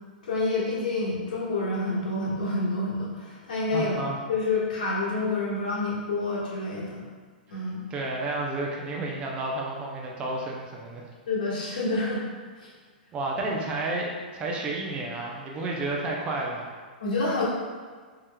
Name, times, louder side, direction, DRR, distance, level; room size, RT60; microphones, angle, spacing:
voice 1, 0.2-3.9 4.3-7.0 7.5-7.8 11.3-12.2 12.6-12.7 17.0-17.4, left 2 dB, 55° left, -5 dB, 1.3 m, -28 dB
voice 2, 3.7-4.2 7.5-7.6 7.9-11.1 13.1-16.7, right 2 dB, 20° right, -1 dB, 0.6 m, -31 dB
4.8 x 4.3 x 2.2 m, 1.5 s
figure-of-eight pair, 105°, 5 cm